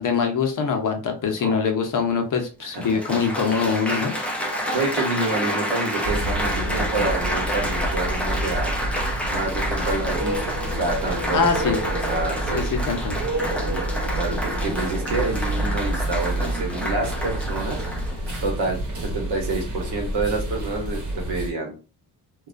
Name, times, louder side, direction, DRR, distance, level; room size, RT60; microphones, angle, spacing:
voice 1, 0.0-4.1 11.3-11.8 12.5-13.2, left 6 dB, 50° left, 4 dB, 0.7 m, -23 dB
Applause, 2.0-2.1 2.7-18.7 19.4-19.7, equal, 5° left, 0.4 m, -29 dB
voice 2, 4.4-8.7 9.3-11.5 11.8-12.7 13.5-13.9 14.2-17.8 18.4-21.7, right 3 dB, 75° right, 2 dB, 1.0 m, -28 dB
sound 1, 6.0-21.5, right 1 dB, 50° right, 1.0 m, -28 dB
2.3 x 2.2 x 2.4 m, 0.33 s
cardioid pair, 120°, 40 cm